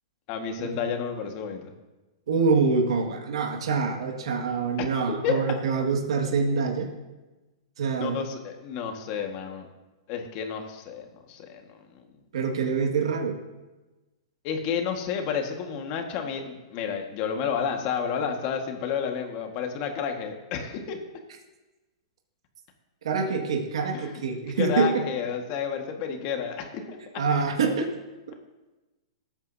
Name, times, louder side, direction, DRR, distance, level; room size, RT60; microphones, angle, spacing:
voice 1, 0.3-1.7 4.8-4.9 5.2-5.4 8.0-9.7 10.1-12.0 12.6-12.7 14.4-21.0 23.9-24.2 24.6-27.0, left 7 dB, 40° left, 4 dB, 1.7 m, -31 dB
voice 2, 2.3-6.9 7.8-8.2 12.3-13.4 23.0-25.0 27.1-27.9, right 4 dB, 80° right, 1 dB, 1.9 m, -25 dB
19.5 x 9.0 x 2.8 m, 1.1 s
hypercardioid pair, 145°, 3 cm